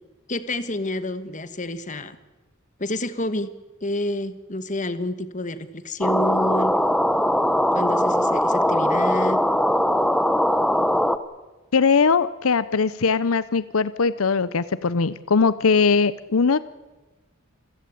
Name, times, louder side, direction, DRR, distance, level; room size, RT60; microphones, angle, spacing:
voice 1, 0.3-2.2 2.8-3.5 3.8-6.7 7.7-9.4, left 1 dB, 35° left, 12 dB, 1.5 m, -28 dB
sound 1, 6.0-11.2, equal, 5° left, 1.0 m, -20 dB
voice 2, 11.7-16.6, left 5 dB, 90° left, 16 dB, 0.8 m, -20 dB
27.5 x 16.0 x 8.6 m, 1.1 s
head